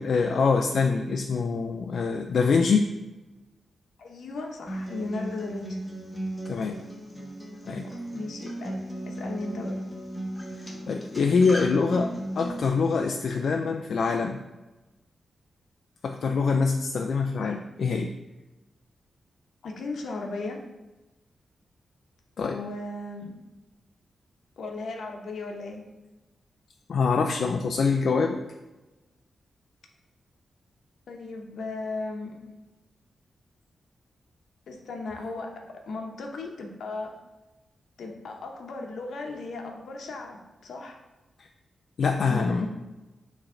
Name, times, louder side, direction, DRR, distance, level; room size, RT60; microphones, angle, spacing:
voice 1, 0.0-2.9 6.5-6.8 7.7-7.9 10.9-14.4 16.0-18.1 22.4-22.6 26.9-28.4 42.0-42.7, left 4 dB, 60° left, 4 dB, 0.4 m, -24 dB
voice 2, 4.0-5.8 7.9-9.7 19.6-20.6 22.4-23.4 24.6-25.8 31.1-32.4 34.7-37.1 38.0-41.0 42.3-42.7, left 3 dB, 75° left, 2 dB, 0.9 m, -36 dB
Acoustic guitar, 4.7-12.7, right 1 dB, 10° left, 0.9 m, -36 dB
8.7 x 3.2 x 3.8 m, 1.1 s
wide cardioid pair, 160°, 0 cm